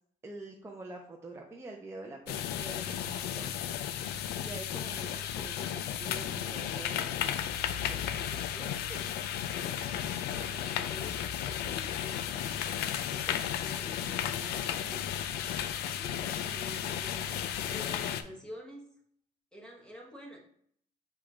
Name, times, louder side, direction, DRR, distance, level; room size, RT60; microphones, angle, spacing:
voice 1, 0.2-3.7 4.4-9.0 16.3-16.6 16.8-17.3, right 2 dB, 15° right, 1 dB, 0.5 m, -47 dB
sound 1, 2.3-18.2, left 10 dB, 75° left, 0.4 m, -34 dB
voice 2, 9.5-18.9 19.5-20.4, equal, 5° left, -1 dB, 1.0 m, -50 dB
4.9 x 2.3 x 4.1 m, 0.63 s
cardioid pair, 110°, 17 cm